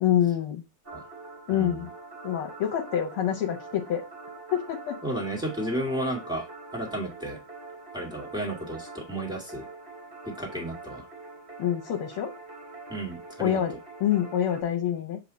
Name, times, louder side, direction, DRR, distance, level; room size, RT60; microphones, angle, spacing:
voice 1, 0.0-0.6 1.5-1.9 2.2-4.0 4.5-5.0 11.6-12.3 13.4-13.7 14.0-15.2, left 10 dB, 75° left, 0 dB, 1.8 m, -26 dB
sound 1, 0.8-14.6, right 3 dB, 25° right, 1.8 m, -44 dB
voice 2, 1.5-1.9 5.0-6.5 6.7-7.4 7.9-9.7 10.3-11.1 12.9-13.6, right 1 dB, ahead, -1 dB, 1.7 m, -32 dB
7.3 x 3.7 x 4.1 m, 0.27 s
omnidirectional pair, 2.4 m